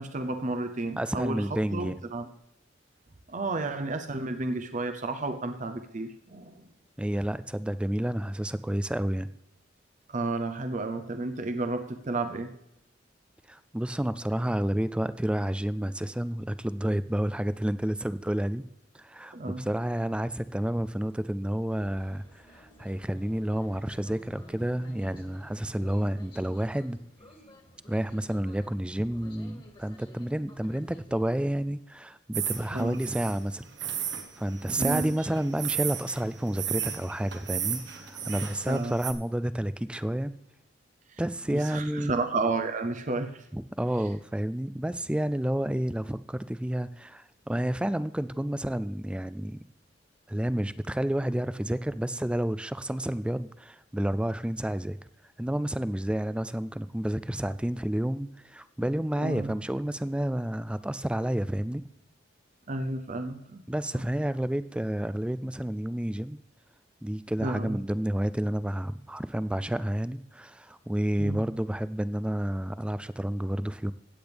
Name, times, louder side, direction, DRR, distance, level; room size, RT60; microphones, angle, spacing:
voice 1, 0.0-2.3 3.3-6.6 10.1-12.5 19.3-19.7 32.7-33.0 34.8-35.1 38.7-39.0 41.5-43.4 59.2-59.5 62.7-63.7 63.9-64.0 67.4-67.8 71.2-71.4, right 2 dB, 40° right, 8 dB, 0.7 m, -32 dB
voice 2, 1.0-2.0 7.0-9.3 13.5-18.6 18.9-27.0 27.9-34.1 34.4-40.3 41.2-42.1 43.5-49.6 50.3-55.0 55.4-61.8 63.7-66.4 67.0-73.9, right 1 dB, 5° right, 15 dB, 0.3 m, -30 dB
sound 1, 21.7-31.3, left 1 dB, 25° left, 2.0 m, -53 dB
sound 2, 32.3-39.1, right 9 dB, 65° right, 1.3 m, -34 dB
16.0 x 8.8 x 3.4 m, 0.85 s
head